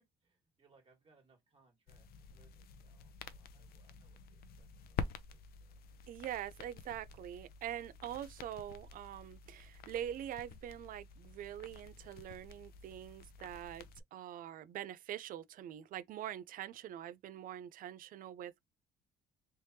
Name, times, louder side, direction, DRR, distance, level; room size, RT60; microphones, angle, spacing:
voice 1, 0.2-5.8, right 4 dB, 35° right, 1.7 m, -71 dB
sound 1, 1.9-14.0, left 6 dB, 65° left, 0.6 m, -49 dB
voice 2, 6.1-13.9 14.1-18.6, right 11 dB, 55° right, 0.4 m, -44 dB
3.4 x 3.2 x 2.7 m
cardioid pair, 110°, 17 cm